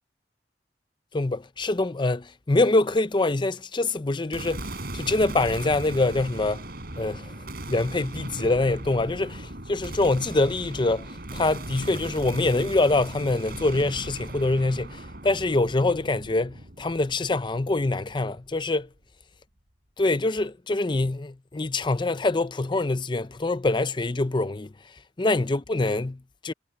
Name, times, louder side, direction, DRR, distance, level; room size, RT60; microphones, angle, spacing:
voice 1, 1.1-4.7 4.9-6.6 7.0-7.3 7.7-18.9 20.0-24.7 25.2-26.5, left 2 dB, 25° left, 0.6 m, -25 dB
sound 1, 4.3-18.6, right 1 dB, 60° right, 4.9 m, -38 dB
head